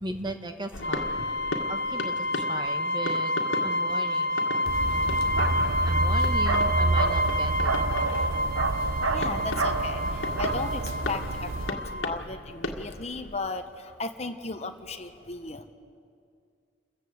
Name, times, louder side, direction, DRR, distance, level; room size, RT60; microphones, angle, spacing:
voice 1, 0.0-3.3 3.6-4.4 5.8-7.7, right 1 dB, 20° right, 6 dB, 1.2 m, -37 dB
sound 1, 0.7-13.4, left 2 dB, 70° left, 1.9 m, -38 dB
sound 2, 0.8-12.2, left 1 dB, 50° left, 1.8 m, -29 dB
Bark, 4.7-11.7, right 3 dB, 90° right, 1.0 m, -28 dB
voice 2, 9.1-15.7, left 3 dB, 30° left, 7 dB, 1.2 m, -36 dB
28.5 x 15.0 x 8.1 m, 2.3 s
head